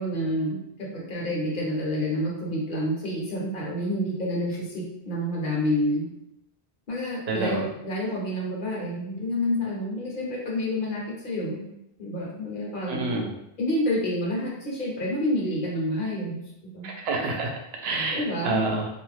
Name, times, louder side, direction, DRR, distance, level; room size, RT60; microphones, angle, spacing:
voice 1, 0.0-6.1 6.9-11.7 12.0-13.2 13.6-16.4 16.7-16.9 18.1-18.6, left 1 dB, 55° left, -4 dB, 0.9 m, -28 dB
voice 2, 7.3-7.7 12.9-13.3 16.8-18.9, right 3 dB, 75° right, 1 dB, 0.8 m, -28 dB
2.5 x 2.2 x 3.2 m, 0.82 s
omnidirectional pair, 1.1 m